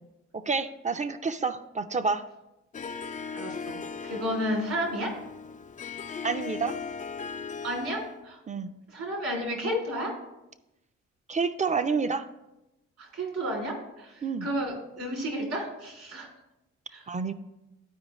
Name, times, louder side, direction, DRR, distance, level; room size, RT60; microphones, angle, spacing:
voice 1, 0.3-2.2 6.2-6.8 8.5-8.7 11.3-12.3 14.2-14.5 17.1-17.3, right 5 dB, 25° right, 10 dB, 0.6 m, -29 dB
Harp, 2.7-8.2, left 5 dB, 25° left, 0.4 m, -38 dB
voice 2, 3.3-5.1 7.6-8.4 8.9-10.1 13.0-16.3 16.9-17.0, equal, 65° right, 1 dB, 3.1 m, -32 dB
12.0 x 4.8 x 3.1 m, 0.94 s
supercardioid pair, 60°, 29 cm